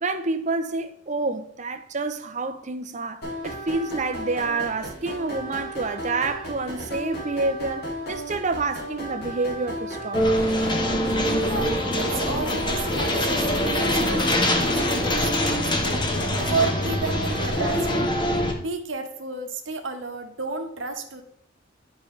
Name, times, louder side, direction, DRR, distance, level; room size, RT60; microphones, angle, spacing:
voice 1, 0.0-10.3, right 3 dB, 40° right, 0.7 m, -28 dB
sound 1, 3.2-18.0, equal, 55° left, 2.8 m, -34 dB
sound 2, 10.1-18.5, left 1 dB, 25° left, 1.1 m, -24 dB
voice 2, 11.3-16.0 16.5-18.1 18.6-21.2, right 4 dB, 75° right, 1.2 m, -32 dB
10.5 x 5.0 x 3.2 m
head